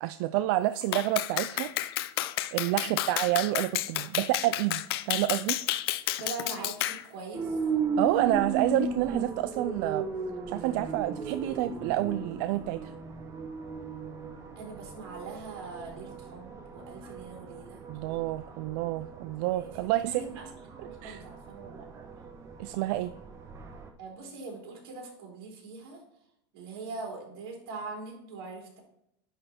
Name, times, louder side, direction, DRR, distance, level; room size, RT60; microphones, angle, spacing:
voice 1, 0.0-1.7 2.5-5.6 8.0-10.1 10.5-12.9 17.9-20.4 21.0-21.2 22.6-23.1, right 15 dB, 55° right, 12 dB, 0.4 m, -29 dB
Clapping, 0.9-7.0, left 15 dB, 70° left, 0.5 m, -31 dB
voice 2, 6.2-7.6 14.5-17.8 18.1-18.2 19.5-21.9 24.0-26.0 26.5-28.8, right 3 dB, 70° right, 0 dB, 3.4 m, -42 dB
sound 1, 7.3-23.9, right 4 dB, 20° right, 0.9 m, -37 dB
10.5 x 4.2 x 4.3 m, 0.79 s
supercardioid pair, 150°, 13 cm